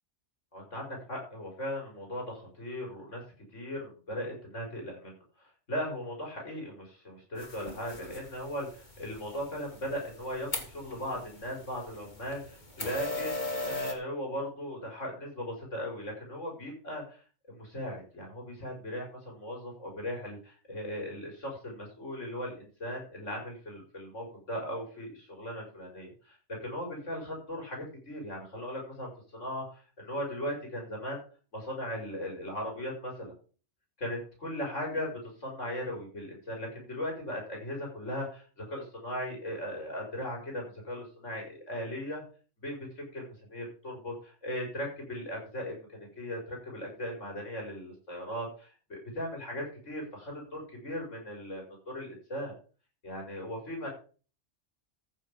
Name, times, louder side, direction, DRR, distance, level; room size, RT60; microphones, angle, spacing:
voice 1, 0.5-3.2 3.5-17.2 17.5-31.2 31.5-33.3 34.0-42.2 42.6-52.5 53.0-53.9, equal, 85° left, 0 dB, 6.2 m, -38 dB
sound 1, 7.4-13.9, left 2 dB, 40° left, 2.3 m, -39 dB
14.0 x 6.8 x 5.3 m, 0.38 s
omnidirectional pair, 1.2 m